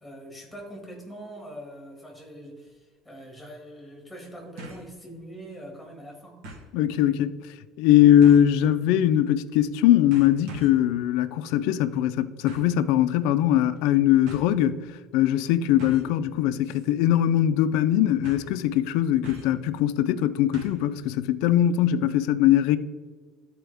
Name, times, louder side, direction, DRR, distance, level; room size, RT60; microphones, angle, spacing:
voice 1, 0.0-6.4, right 1 dB, ahead, 1.9 m, -43 dB
sound 1, 2.7-2.8 4.6-4.9 5.3-5.4 6.4-6.7 8.2-8.6 9.5-9.8 10.1-10.9 12.5-12.8 13.8-13.9 14.3-14.5 15.8-16.2 16.6-16.9 17.2-17.3 18.2-18.6 19.2-19.6 20.5-20.9 21.2-21.3, equal, 90° right, 1.8 m, -42 dB
voice 2, 6.7-7.3 7.8-14.8 15.1-22.8, left 11 dB, 80° left, 0.4 m, -21 dB
13.0 x 4.3 x 3.4 m
cardioid pair, 165°, 0 cm